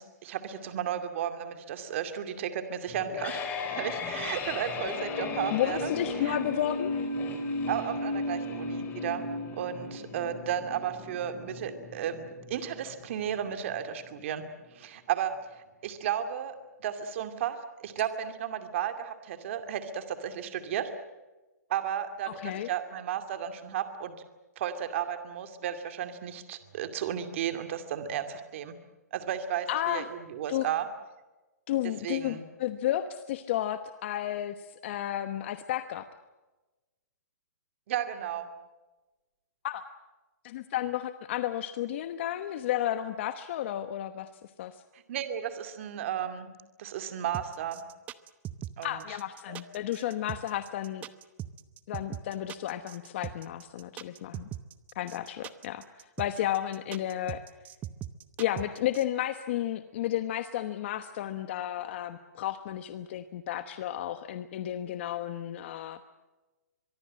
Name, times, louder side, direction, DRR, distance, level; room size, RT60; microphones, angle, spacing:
voice 1, 0.0-3.5 3.7-5.9 6.2-6.4 7.7-14.4 14.7-20.9 21.7-24.1 24.6-28.8 29.1-30.9 32.0-32.4 37.9-38.5 45.1-46.5 46.8-47.8 48.8-49.0 49.5-49.6, right 9 dB, 45° right, 8 dB, 2.4 m, -34 dB
sound 1, 2.9-13.9, left 2 dB, 20° left, 4.2 m, -35 dB
voice 2, 5.2-6.9 22.3-22.7 29.7-30.1 30.5-30.7 31.7-34.5 34.8-36.1 39.6-39.8 40.4-44.3 44.6-44.7 48.8-51.0 51.9-54.5 54.9-55.8 56.2-57.4 58.4-66.0, left 12 dB, 40° left, 10 dB, 1.1 m, -32 dB
sound 2, 47.3-59.0, right 12 dB, 15° right, 0.8 m, -40 dB
24.0 x 23.5 x 7.6 m, 1.1 s
hypercardioid pair, 155°, 9 cm